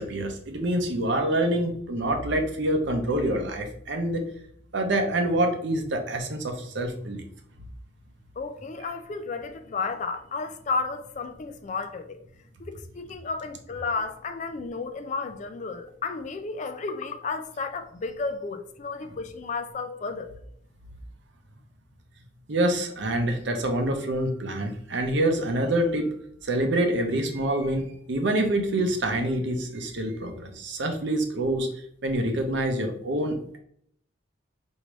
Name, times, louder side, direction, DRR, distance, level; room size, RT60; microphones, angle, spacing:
voice 1, 0.0-4.2 4.7-7.2 22.5-26.1 26.4-31.7 32.0-33.4, right 1 dB, 60° right, 0.7 m, -26 dB
voice 2, 8.4-12.2 12.6-20.3, left 4 dB, 35° left, 0.3 m, -32 dB
4.6 x 2.7 x 3.0 m
head